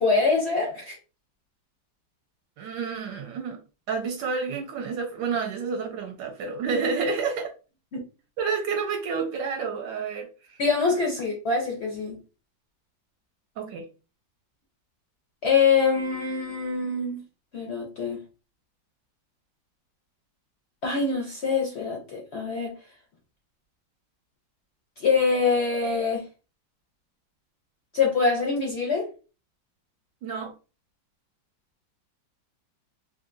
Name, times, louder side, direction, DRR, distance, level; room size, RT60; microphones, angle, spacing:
voice 1, 0.0-1.0 10.6-12.2 15.4-17.2 17.5-18.2 20.8-22.7 25.0-26.3 27.9-29.1, left 5 dB, 65° left, 0 dB, 0.6 m, -24 dB
voice 2, 2.6-3.6 3.9-7.5 8.4-10.6 13.6-13.9 30.2-30.5, right 5 dB, 75° right, 3 dB, 1.2 m, -29 dB
3.3 x 2.7 x 2.5 m, 0.34 s
omnidirectional pair, 2.0 m